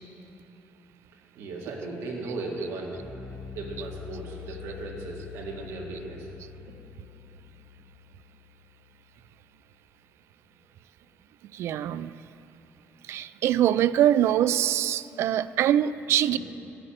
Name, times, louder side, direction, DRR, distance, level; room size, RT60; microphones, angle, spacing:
voice 1, 1.4-2.9 3.6-6.3 6.7-6.8 16.3-16.4, right 3 dB, 90° right, -1 dB, 2.1 m, -36 dB
Bass guitar, 2.9-9.4, left 8 dB, 15° left, 1.6 m, -45 dB
voice 2, 11.5-12.1 13.1-16.4, right 11 dB, 65° right, 16 dB, 0.3 m, -23 dB
11.0 x 7.8 x 8.9 m, 2.9 s
cardioid pair, 170°, 5 cm